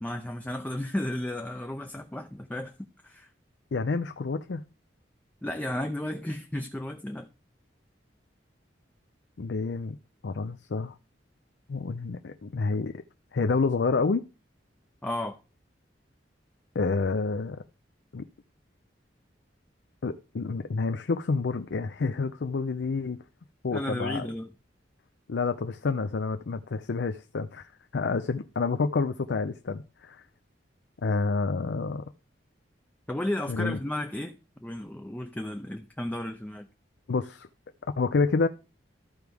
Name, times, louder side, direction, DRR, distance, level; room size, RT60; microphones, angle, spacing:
voice 1, 0.0-2.7 3.0-3.3 5.4-7.3 15.0-15.4 23.7-24.5 33.1-36.7, left 1 dB, 10° left, 0.5 m, -33 dB
voice 2, 3.7-4.7 9.4-10.0 10.2-10.9 11.7-13.0 13.3-14.2 16.7-17.6 18.1-18.2 20.0-23.2 23.6-24.3 25.3-30.2 31.0-32.0 33.5-33.8 37.1-37.5 38.0-38.5, left 4 dB, 70° left, 0.5 m, -28 dB
14.0 x 4.7 x 3.4 m
head